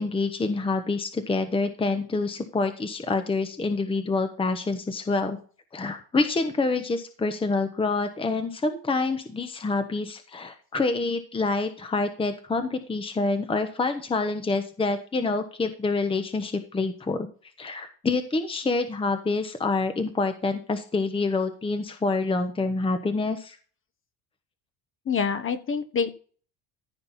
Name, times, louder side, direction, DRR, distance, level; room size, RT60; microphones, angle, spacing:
voice 1, 0.0-5.4 5.7-17.3 17.6-23.6, left 3 dB, 15° left, 8 dB, 1.1 m, -27 dB
voice 2, 25.1-26.1, left 6 dB, 30° left, 9 dB, 1.3 m, -26 dB
14.5 x 5.4 x 4.2 m, 0.40 s
cardioid pair, 120°, 38 cm